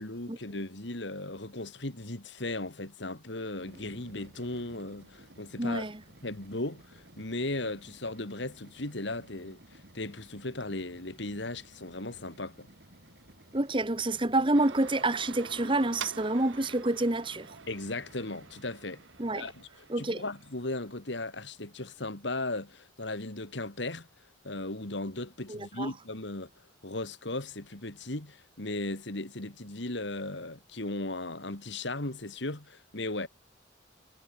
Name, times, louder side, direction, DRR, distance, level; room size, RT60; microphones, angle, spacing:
voice 1, 0.0-5.9 6.2-12.7 17.7-19.0 19.3-19.7 20.0-24.1 24.4-26.5 26.8-33.3, left 2 dB, 65° left, 2.7 m, -37 dB
sound 1, 3.5-19.9, right 1 dB, 55° right, 4.9 m, -56 dB
voice 2, 5.6-6.0 13.5-17.6 19.2-19.5 19.9-20.2 25.5-25.9, right 2 dB, 25° right, 1.3 m, -28 dB
sound 2, 14.5-21.2, right 6 dB, 75° right, 1.3 m, -46 dB
head